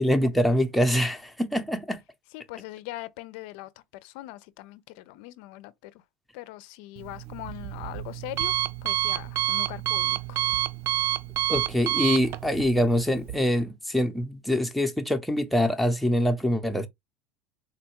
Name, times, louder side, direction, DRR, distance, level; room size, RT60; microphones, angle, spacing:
voice 1, 0.0-2.0 11.5-16.9, equal, ahead, 0.5 m, -24 dB
voice 2, 2.3-3.7 4.0-6.0 6.3-8.5 8.8-10.4, left 17 dB, 70° left, 0.4 m, -41 dB
Alarm, 7.0-13.4, right 12 dB, 50° right, 0.4 m, -29 dB
3.8 x 2.1 x 2.9 m
supercardioid pair, 105°, 5 cm